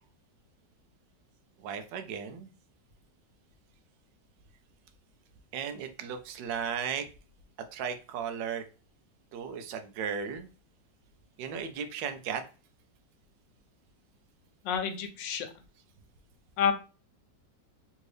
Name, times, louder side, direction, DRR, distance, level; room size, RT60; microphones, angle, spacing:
voice 1, 1.6-2.5 5.5-7.1 7.7-8.6 9.3-10.5 11.4-12.4, right 7 dB, 85° right, 8 dB, 1.3 m, -35 dB
voice 2, 14.6-15.5 16.6-16.7, left 7 dB, 85° left, 7 dB, 1.3 m, -29 dB
3.6 x 2.7 x 3.2 m, 0.34 s
omnidirectional pair, 1.9 m